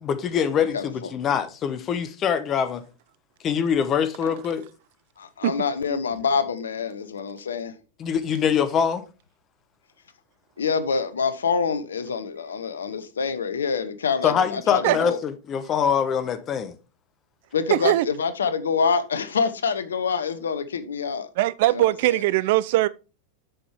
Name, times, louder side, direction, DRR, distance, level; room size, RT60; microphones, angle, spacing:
voice 1, 0.0-2.8 3.4-4.6 8.0-9.0 14.2-16.7, left 7 dB, 30° left, 1.0 m, -24 dB
voice 2, 0.6-0.9 5.2-7.8 10.6-15.2 17.5-21.3 21.7-22.2, left 5 dB, 70° left, 0.7 m, -26 dB
voice 3, 17.7-18.1 21.4-22.9, right 16 dB, 50° right, 0.3 m, -20 dB
7.7 x 6.1 x 3.4 m
figure-of-eight pair, 90°, 0 cm